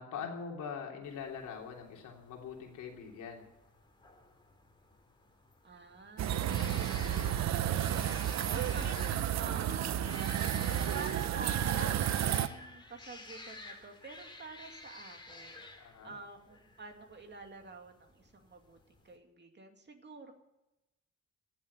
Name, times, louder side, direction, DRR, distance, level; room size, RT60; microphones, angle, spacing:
voice 1, 0.0-3.5 15.8-16.1, left 6 dB, 85° left, 0 dB, 3.3 m, -43 dB
sound 1, 1.0-19.2, left 2 dB, 15° left, 2.7 m, -52 dB
voice 2, 5.6-6.6 7.1-10.2 10.9-20.3, right 3 dB, 35° right, 4 dB, 2.5 m, -48 dB
sound 2, 6.2-12.5, right 10 dB, 65° right, 0.8 m, -31 dB
17.5 x 7.5 x 9.9 m, 0.96 s
cardioid pair, 90°, 30 cm